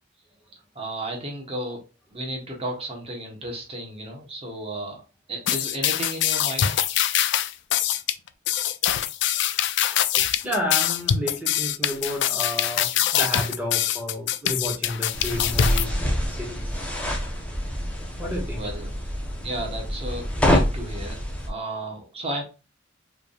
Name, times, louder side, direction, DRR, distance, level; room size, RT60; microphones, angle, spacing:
voice 1, 0.7-1.8 2.1-5.0 5.3-6.7 18.5-18.9 19.4-21.2 21.5-22.4, right 1 dB, 30° right, 1.2 m, -33 dB
sound 1, 5.5-15.8, left 11 dB, 60° left, 0.4 m, -24 dB
voice 2, 10.2-12.9 13.1-16.9 18.2-18.6, left 1 dB, 10° right, 1.7 m, -31 dB
sound 2, 15.1-21.5, equal, 5° left, 0.9 m, -26 dB
4.8 x 3.4 x 2.4 m
head